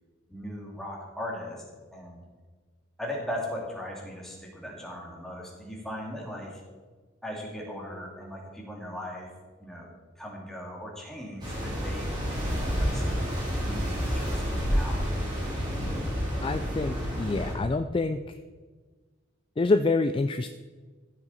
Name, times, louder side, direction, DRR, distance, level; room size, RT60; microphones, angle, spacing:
voice 1, 0.3-1.6 1.9-2.2 3.0-6.6 7.2-9.3 9.6-13.0 13.6-15.0, left 1 dB, ahead, -2 dB, 2.3 m, -38 dB
sound 1, 11.4-17.5, equal, 25° right, 3.9 m, -29 dB
voice 2, 16.4-18.4 19.6-20.5, left 3 dB, 25° left, 9 dB, 0.3 m, -26 dB
14.5 x 7.5 x 4.1 m, 1.4 s
head